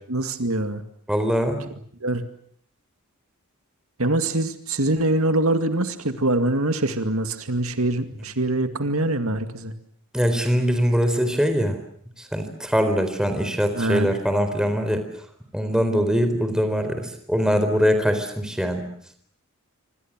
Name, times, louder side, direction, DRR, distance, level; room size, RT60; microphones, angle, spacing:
voice 1, 0.1-0.8 2.0-2.2 4.0-9.7 13.7-14.1, right 2 dB, 70° right, 8 dB, 2.2 m, -24 dB
voice 2, 1.1-1.6 10.1-11.8 12.2-15.1 15.5-18.8, equal, 5° right, 7 dB, 4.2 m, -22 dB
26.5 x 26.0 x 7.5 m, 0.64 s
head